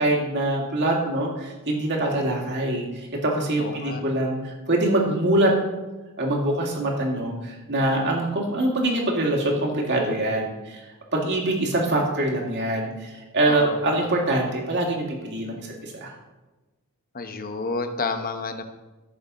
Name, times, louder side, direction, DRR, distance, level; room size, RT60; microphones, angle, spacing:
voice 1, 0.0-5.5 6.2-10.8 11.1-16.1, right 1 dB, 55° right, -1 dB, 2.4 m, -24 dB
voice 2, 3.6-4.0 13.5-13.8 17.1-18.6, left 3 dB, 40° left, 7 dB, 0.9 m, -30 dB
14.0 x 6.6 x 4.1 m, 1.1 s
head